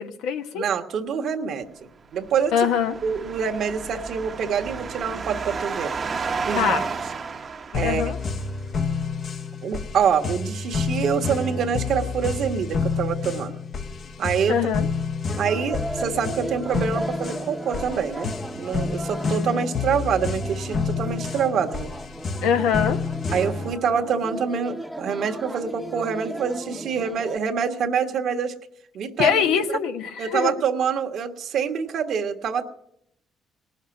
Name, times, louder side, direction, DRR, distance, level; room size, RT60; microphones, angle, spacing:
voice 1, 0.0-0.6 2.5-3.0 6.5-6.9 7.7-8.2 14.5-14.9 22.4-23.0 29.2-30.5, left 7 dB, 85° left, 7 dB, 1.0 m, -23 dB
voice 2, 0.5-2.5 3.0-5.9 6.5-6.7 7.7-8.1 9.6-13.6 14.2-14.6 15.4-21.9 23.3-28.5 28.9-29.6 30.2-32.7, right 7 dB, 70° right, 4 dB, 1.3 m, -26 dB
sound 1, 2.1-8.4, right 5 dB, 45° right, 0.9 m, -32 dB
sound 2, 7.7-23.8, left 4 dB, 55° left, 0.9 m, -29 dB
sound 3, 15.3-27.4, right 1 dB, 5° right, 0.8 m, -36 dB
19.0 x 6.5 x 9.6 m, 0.78 s
supercardioid pair, 65°, 0 cm